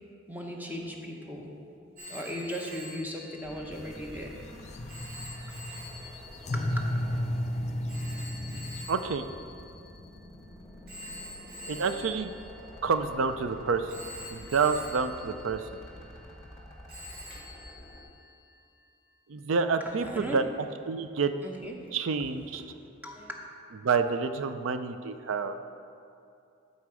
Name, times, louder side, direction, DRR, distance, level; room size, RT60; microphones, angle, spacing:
voice 1, 0.3-4.3 6.5-6.8 19.8-20.4 21.4-21.8 22.5-23.4, equal, 10° right, 0 dB, 0.8 m, -38 dB
Telephone, 2.0-10.3 10.9-13.4 13.9-16.6 16.9-18.6, left 1 dB, 50° right, 2.2 m, -47 dB
sound 1, 3.4-18.0, left 1 dB, 15° left, 1.0 m, -49 dB
sound 2, 3.7-8.8, left 1 dB, 35° left, 0.5 m, -34 dB
voice 2, 8.5-9.3 11.7-12.3 12.8-14.0 14.3-15.7 19.3-20.4 20.9-21.3 21.9-22.6 23.8-25.6, right 5 dB, 75° right, 9 dB, 0.5 m, -28 dB
12.5 x 4.2 x 4.9 m, 2.5 s
head